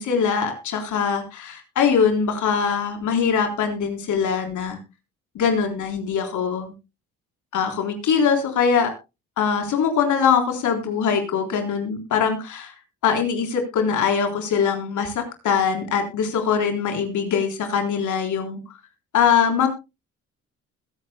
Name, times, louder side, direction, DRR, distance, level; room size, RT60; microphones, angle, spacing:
voice 1, 0.0-4.8 5.4-6.7 7.5-8.9 9.4-12.7 13.0-18.6 19.1-19.7, left 6 dB, 75° left, 5 dB, 3.8 m, -22 dB
21.0 x 10.0 x 2.2 m, 0.26 s
cardioid pair, 90°, 30 cm